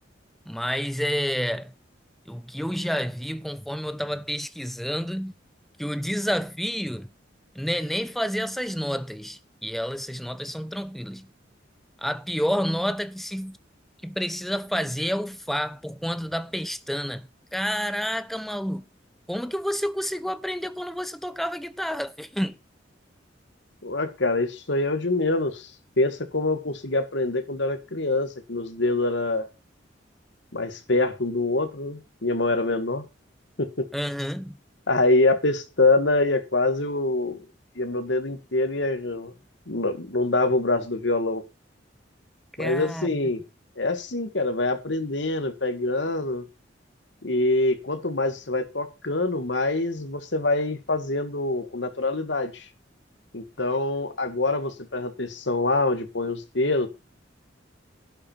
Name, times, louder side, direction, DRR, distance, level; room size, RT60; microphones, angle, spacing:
voice 1, 0.5-1.7 2.3-5.3 5.8-7.1 7.5-11.3 12.0-13.6 14.0-18.8 19.3-22.6 33.9-34.6 42.6-43.1, equal, ahead, 0.7 m, -29 dB
voice 2, 23.8-25.7 26.0-29.5 30.5-33.0 33.6-33.9 34.9-37.4 37.8-39.3 39.7-41.4 42.6-43.4 43.8-46.4 47.2-52.7 53.3-56.9, left 2 dB, 70° left, 1.9 m, -25 dB
11.5 x 7.5 x 5.6 m
head